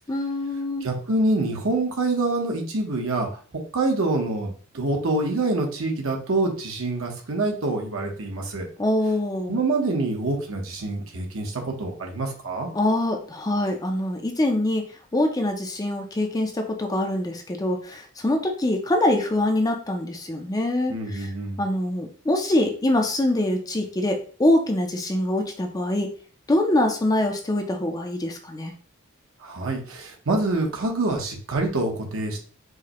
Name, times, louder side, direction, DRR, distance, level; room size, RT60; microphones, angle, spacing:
voice 1, 0.1-0.9 8.8-9.6 12.7-14.8 15.1-21.3 21.6-26.1 26.5-28.7, left 1 dB, 15° left, 4 dB, 0.4 m, -24 dB
voice 2, 0.8-3.3 3.7-8.7 9.5-12.7 20.9-21.6 29.4-32.4, right 2 dB, 65° right, 2 dB, 0.9 m, -26 dB
4.7 x 2.1 x 2.9 m, 0.42 s
head